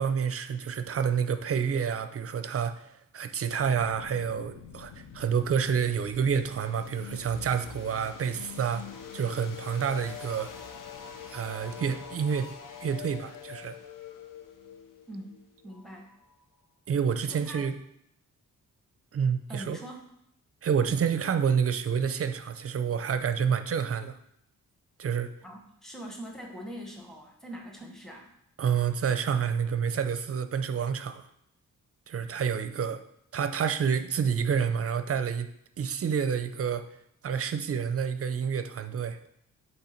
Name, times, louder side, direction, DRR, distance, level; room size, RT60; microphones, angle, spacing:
voice 1, 0.0-8.8 9.1-10.5 11.3-12.5 12.8-13.8 16.9-17.7 19.1-19.8 20.6-24.2 25.0-25.3 28.6-31.2 32.1-33.0 33.3-35.5 35.8-36.8 37.2-39.2, right 7 dB, 45° right, 10 dB, 0.5 m, -28 dB
sound 1, 3.6-16.4, left 7 dB, 70° left, 0.7 m, -45 dB
voice 2, 15.1-16.1 17.2-17.7 19.5-20.1 25.4-28.3, equal, ahead, 0 dB, 1.1 m, -43 dB
8.2 x 3.3 x 4.4 m, 0.74 s
wide cardioid pair, 110°, 33 cm